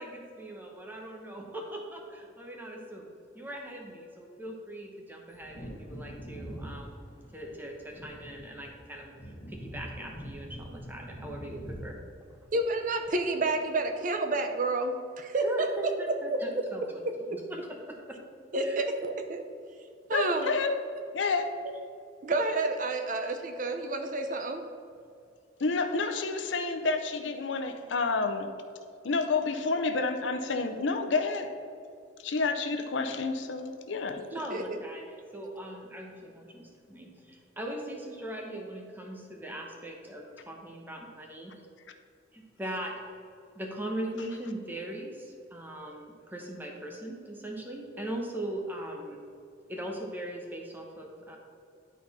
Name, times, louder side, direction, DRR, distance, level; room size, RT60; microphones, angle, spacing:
voice 1, 0.0-3.1 3.3-12.0 15.3-18.2 18.6-18.8 34.3-41.5 42.3-43.0 43.5-49.2 49.7-51.4, right 1 dB, 10° right, 0 dB, 1.0 m, -40 dB
Wind / Thunder, 5.3-13.6 13.9-14.0, equal, 45° left, 1.5 m, -44 dB
voice 2, 12.5-15.7 16.3-16.6 17.3-17.4 18.5-19.5 20.1-20.5 22.2-24.7 34.3-34.8, right 2 dB, 45° right, 6 dB, 0.6 m, -30 dB
voice 3, 20.1-20.8 21.1-21.6 25.6-28.5 29.0-31.6 32.2-34.2, left 3 dB, 75° left, 7 dB, 0.6 m, -29 dB
11.0 x 4.1 x 4.2 m, 2.5 s
head